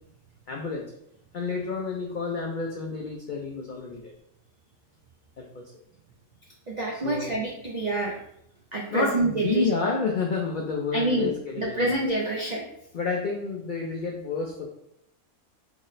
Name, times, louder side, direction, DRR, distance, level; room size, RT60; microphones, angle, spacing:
voice 1, 0.5-0.9 1.3-4.1 5.4-5.5 6.9-7.4 8.9-11.9 12.9-14.7, left 4 dB, 75° left, 0 dB, 0.4 m, -29 dB
voice 2, 6.7-8.2 8.7-9.7 10.9-12.6, right 2 dB, 70° right, -2 dB, 0.4 m, -27 dB
3.6 x 2.1 x 3.9 m, 0.75 s
omnidirectional pair, 1.4 m